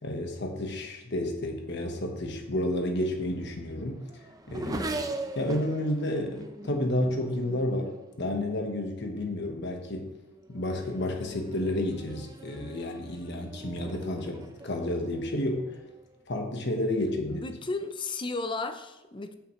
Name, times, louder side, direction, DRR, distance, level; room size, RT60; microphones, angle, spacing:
voice 1, 0.0-4.0 4.5-5.1 5.3-10.1 10.5-15.6 16.3-17.4, left 1 dB, 60° left, 3 dB, 1.3 m, -31 dB
Race car auto racing / Accelerating revving vroom, 3.0-8.7 9.5-9.9 10.3-16.2, right 2 dB, 20° right, 0.6 m, -41 dB
voice 2, 17.3-19.3, left 3 dB, 25° left, 8 dB, 0.6 m, -34 dB
8.9 x 7.6 x 3.2 m, 0.96 s
head